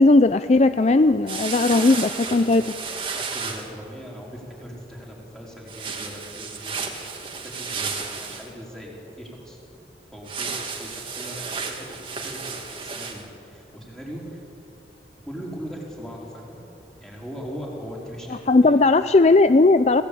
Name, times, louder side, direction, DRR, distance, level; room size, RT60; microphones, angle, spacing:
voice 1, 0.0-2.6 18.5-20.0, left 3 dB, 35° left, 11 dB, 0.4 m, -17 dB
sound 1, 1.3-3.7 5.7-8.5 10.3-13.2, right 5 dB, 30° right, 2.3 m, -32 dB
voice 2, 3.2-9.6 10.1-14.4 15.2-16.6 17.0-18.8, equal, 5° left, -3 dB, 4.6 m, -39 dB
26.5 x 17.0 x 8.6 m, 2.9 s
head